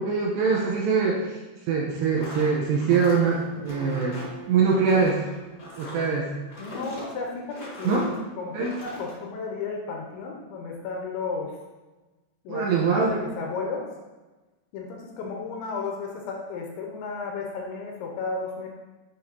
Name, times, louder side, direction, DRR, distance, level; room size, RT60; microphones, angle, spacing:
voice 1, 0.0-1.4 1.7-4.2 4.5-5.2 5.8-6.3 7.8-8.1 8.5-8.7 12.5-13.1, right 5 dB, 75° right, -2 dB, 2.6 m, -23 dB
sound 1, 2.0-8.2 8.5-9.1, left 1 dB, 25° left, 2.4 m, -42 dB
Acoustic guitar, 3.7-7.3, right 6 dB, 55° right, 3.8 m, -46 dB
voice 2, 6.6-8.0 8.4-11.6 12.4-12.7 13.0-13.8 14.7-18.7, left 4 dB, 75° left, 0 dB, 3.0 m, -33 dB
10.0 x 7.0 x 2.8 m, 1.2 s
omnidirectional pair, 5.7 m